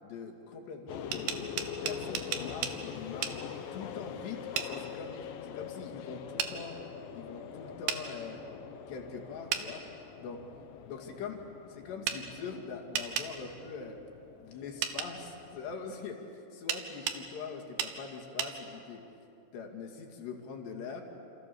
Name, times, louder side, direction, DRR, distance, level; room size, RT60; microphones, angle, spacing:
voice 1, 0.0-3.4 3.7-6.8 7.2-8.4 8.9-9.9 10.2-10.4 10.9-11.4 11.7-14.0 14.4-19.0 19.5-21.0, left 5 dB, 60° left, 2 dB, 4.3 m, -43 dB
sound 1, 0.9-16.1, left 7 dB, 80° left, 2.0 m, -44 dB
sound 2, 0.9-2.8 3.2-3.4 4.6-4.7 6.4-6.5 7.9-8.0 9.5-9.7 12.1-12.2 12.9-13.3 14.8-15.1 16.7-17.2 17.8-17.9 18.4-18.5, right 9 dB, 70° right, 2.6 m, -33 dB
28.5 x 28.5 x 7.1 m, 2.7 s
omnidirectional pair, 5.9 m